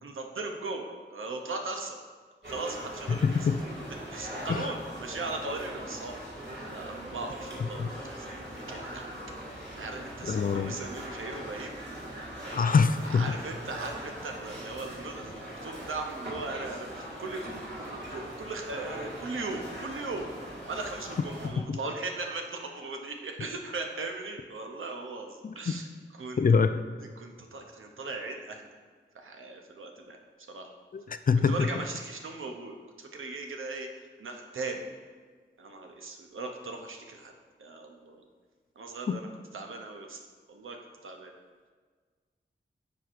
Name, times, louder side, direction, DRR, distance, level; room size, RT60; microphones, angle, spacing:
voice 1, 0.0-2.0 2.5-3.5 3.9-6.2 6.6-9.1 9.8-11.7 12.4-12.8 13.0-20.3 20.7-25.9 26.1-26.6 27.2-28.7 29.1-30.2 30.5-30.7 31.5-33.9 34.2-34.9 35.6-37.3 37.6-38.2 38.8-40.2 40.5-40.8 41.0-41.3, right 3 dB, 85° right, 3 dB, 0.7 m, -38 dB
sound 1, 2.4-21.5, right 1 dB, 60° right, 1.9 m, -41 dB
voice 2, 3.1-3.6 4.5-4.6 7.8-7.9 10.3-10.8 12.5-13.3 21.7-21.8 25.4-25.5 26.4-26.7 30.9-31.5 39.1-39.2, left 5 dB, 45° left, 10 dB, 0.4 m, -24 dB
9.5 x 4.6 x 2.5 m, 1.5 s
cardioid pair, 45°, 20 cm